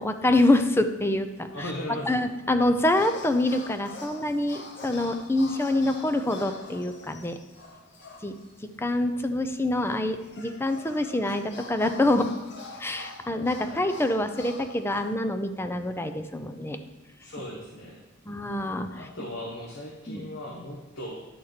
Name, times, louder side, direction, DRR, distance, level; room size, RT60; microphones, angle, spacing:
voice 1, 0.0-1.5 2.1-7.4 8.2-8.3 8.8-12.3 12.8-16.8 18.3-19.0 20.1-20.2, left 1 dB, 10° left, 8 dB, 0.5 m, -26 dB
voice 2, 1.5-2.3 13.5-13.9 17.2-18.0 18.9-21.2, left 1 dB, 80° left, -1 dB, 1.2 m, -38 dB
sound 1, 2.8-8.6 8.9-9.0 9.9-15.2, left 3 dB, 60° left, 1.1 m, -45 dB
10.0 x 4.2 x 6.6 m, 1.1 s
head